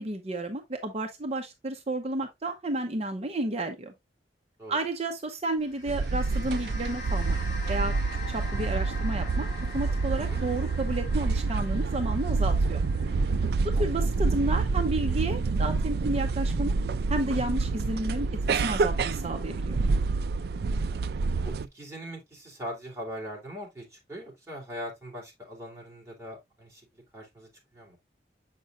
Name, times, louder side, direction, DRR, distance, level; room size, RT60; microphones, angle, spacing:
voice 1, 0.0-3.9 4.7-7.4 7.7-7.9 8.3-9.5 9.7-12.8 13.6-16.8 17.1-19.8, right 2 dB, 35° right, 0.7 m, -31 dB
sound 1, 5.6-16.1, left 2 dB, 45° left, 2.6 m, -44 dB
sound 2, 5.9-21.7, right 4 dB, 60° right, 0.4 m, -27 dB
voice 2, 13.7-14.1 21.4-28.0, equal, 15° right, 3.1 m, -41 dB
7.4 x 5.4 x 2.4 m
head